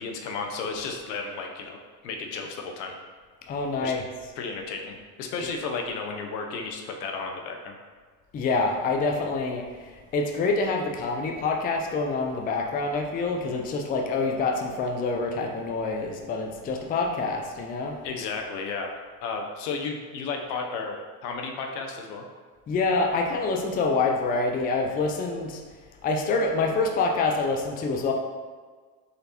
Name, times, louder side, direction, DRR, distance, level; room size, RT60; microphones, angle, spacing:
voice 1, 0.0-2.9 3.8-3.9 4.4-7.7 18.0-22.2, left 4 dB, 80° left, 3 dB, 0.7 m, -33 dB
voice 2, 3.5-4.0 8.3-17.9 22.7-25.6 26.0-28.1, left 3 dB, 20° left, 2 dB, 0.4 m, -26 dB
4.0 x 3.2 x 2.9 m, 1.5 s
supercardioid pair, 90°, 47 cm